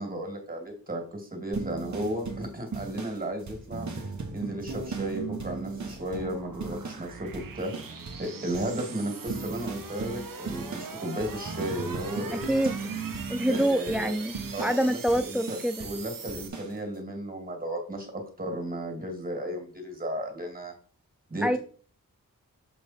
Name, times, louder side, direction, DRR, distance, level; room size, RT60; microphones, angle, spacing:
voice 1, 0.0-3.9 4.3-7.7 8.2-12.4 13.4-14.1 14.5-20.7 21.3-21.6, right 1 dB, 25° right, 3 dB, 2.7 m, -34 dB
sound 1, 1.5-7.1 7.3-8.3 8.5-16.0 16.3-16.7, right 4 dB, 55° right, 1.5 m, -37 dB
sound 2, 3.2-16.5, right 5 dB, 75° right, 1.1 m, -43 dB
voice 2, 12.3-13.0 13.3-15.9 21.4-21.6, right 1 dB, 5° right, 10 dB, 0.3 m, -27 dB
7.4 x 5.5 x 4.5 m, 0.41 s
wide cardioid pair, 100°, 34 cm